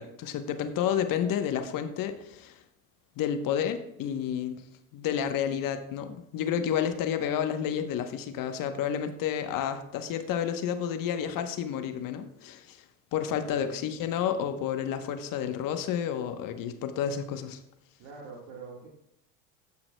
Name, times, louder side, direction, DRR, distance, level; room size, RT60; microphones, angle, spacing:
voice 1, 0.0-2.6 3.2-4.6 4.9-12.8 13.1-17.6, left 8 dB, 55° left, 8 dB, 1.0 m, -30 dB
voice 2, 13.2-13.7 18.0-18.9, right 4 dB, 75° right, -3 dB, 1.7 m, -45 dB
14.0 x 5.8 x 2.2 m, 0.78 s
supercardioid pair, 90°, 40 cm